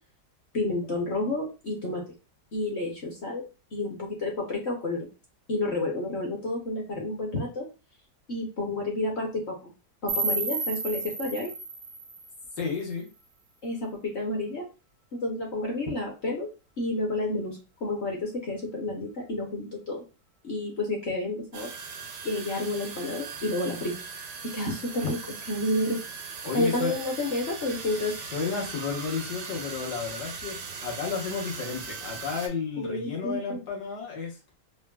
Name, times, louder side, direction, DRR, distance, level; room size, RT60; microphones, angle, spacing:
voice 1, 0.5-2.0 2.5-3.4 3.7-5.0 5.5-7.7 8.3-9.7 10.0-11.5 13.6-14.6 15.2-16.5 16.8-20.0 20.4-21.7 22.2-23.9 24.5-26.0 26.5-28.1 32.8-33.6, left 2 dB, 55° left, -1 dB, 0.8 m, -30 dB
sound 1, 10.1-13.1, right 3 dB, 70° right, 0.6 m, -32 dB
voice 2, 12.6-13.1 26.4-26.9 28.2-34.4, left 5 dB, 80° left, -2 dB, 1.6 m, -32 dB
sound 2, 21.5-32.5, right 5 dB, 90° right, 1.3 m, -39 dB
3.7 x 2.1 x 2.2 m, 0.30 s
omnidirectional pair, 1.7 m